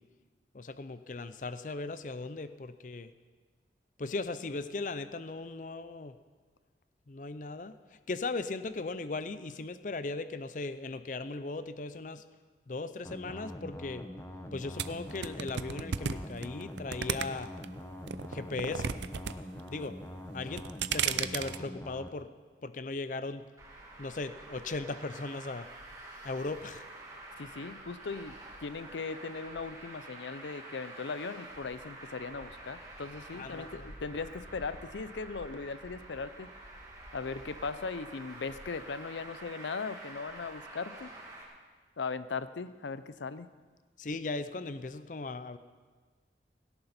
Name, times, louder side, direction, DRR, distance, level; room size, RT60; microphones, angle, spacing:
voice 1, 0.5-3.1 4.0-6.2 7.1-12.2 12.7-14.0 14.5-17.5 18.3-19.0 19.7-20.0 20.3-20.6 20.9-22.3 22.6-23.4 24.0-25.7 26.2-26.8 33.3-33.9 44.0-45.6, left 3 dB, 45° left, 12 dB, 0.5 m, -38 dB
sound 1, 13.0-22.1, left 1 dB, 15° left, 0.9 m, -44 dB
sound 2, 14.8-17.7 18.1-19.3 19.6-20.1 20.5-21.6, right 7 dB, 85° right, 0.6 m, -33 dB
Traffic noise roadway noise, 23.6-41.4, right 2 dB, 20° right, 2.4 m, -48 dB
voice 2, 27.4-28.4 28.6-36.5 37.1-41.1 42.0-43.5, left 4 dB, 90° left, 14 dB, 0.6 m, -38 dB
17.5 x 17.0 x 4.3 m, 1.4 s
head